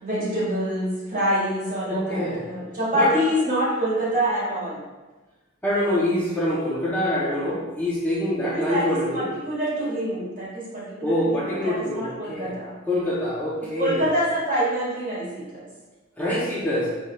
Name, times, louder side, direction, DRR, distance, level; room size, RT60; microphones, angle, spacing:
voice 1, 0.0-4.8 8.4-12.8 13.8-15.7, equal, 40° right, -7 dB, 1.5 m, -26 dB
voice 2, 1.9-2.4 2.9-3.1 5.6-9.3 11.0-12.5 12.9-14.1 16.2-16.9, left 1 dB, 10° left, -8 dB, 0.6 m, -25 dB
4.9 x 3.1 x 2.3 m, 1.2 s
head